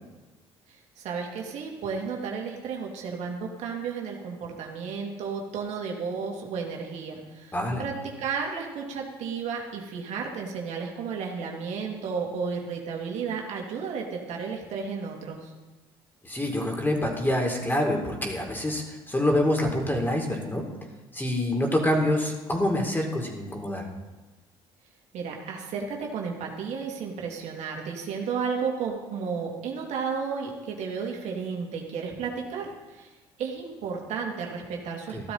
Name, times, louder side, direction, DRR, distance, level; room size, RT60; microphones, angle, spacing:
voice 1, 0.7-15.5 25.1-33.1 33.4-35.3, right 5 dB, 65° right, 0 dB, 2.9 m, -33 dB
voice 2, 16.2-20.6 21.1-23.8, left 1 dB, 15° left, 1 dB, 4.2 m, -26 dB
15.5 x 12.5 x 4.4 m, 1.2 s
hypercardioid pair, 60°, 13 cm